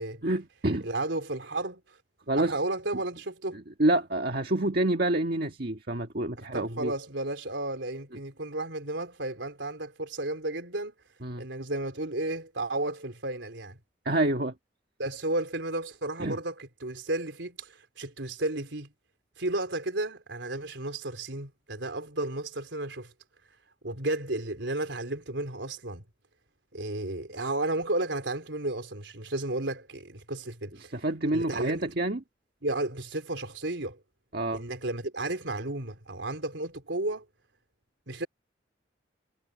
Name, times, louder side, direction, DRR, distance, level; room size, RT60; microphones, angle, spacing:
voice 1, 0.2-0.9 2.3-2.5 3.8-6.9 11.2-11.4 14.1-14.5 16.2-16.4 30.9-32.2 34.3-34.6, right 1 dB, 55° right, 1.7 m, -27 dB
voice 2, 0.8-1.8 2.4-3.6 6.4-10.9 11.4-13.8 15.0-18.9 19.4-23.1 23.8-26.0 26.7-30.9 31.3-31.9 32.6-34.0 34.5-37.3 38.1-38.3, right 2 dB, 80° right, 3.8 m, -33 dB
head